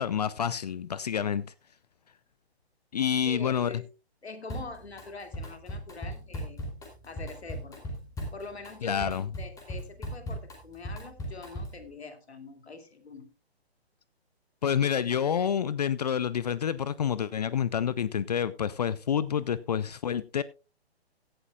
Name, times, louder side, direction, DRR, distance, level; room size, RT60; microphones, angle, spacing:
voice 1, 0.0-1.5 2.9-3.7 8.8-9.2 14.6-20.4, left 8 dB, 40° left, 0.5 m, -28 dB
voice 2, 3.3-3.9 4.2-6.7 7.0-7.8 8.3-13.3, left 3 dB, 75° left, 2.4 m, -44 dB
Drum kit, 4.5-5.1 5.3-11.9, equal, 10° left, 3.0 m, -38 dB
16.5 x 11.5 x 2.3 m
figure-of-eight pair, 135°, 32 cm